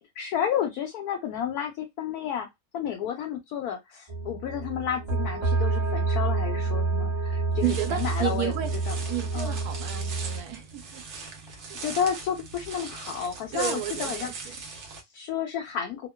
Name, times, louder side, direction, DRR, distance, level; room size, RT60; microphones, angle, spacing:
voice 1, 0.2-2.5 2.7-8.5 8.9-9.0 9.3-9.6 11.8-16.1, left 8 dB, 85° left, 1.1 m, -31 dB
sound 1, 4.1-10.4, right 3 dB, 25° right, 0.7 m, -28 dB
sound 2, 7.5-15.0, right 4 dB, 60° right, 0.9 m, -40 dB
voice 2, 7.6-8.7 9.1-11.0 11.6-11.8 13.5-14.6, right 12 dB, 85° right, 1.1 m, -32 dB
2.9 x 2.1 x 2.2 m
omnidirectional pair, 1.5 m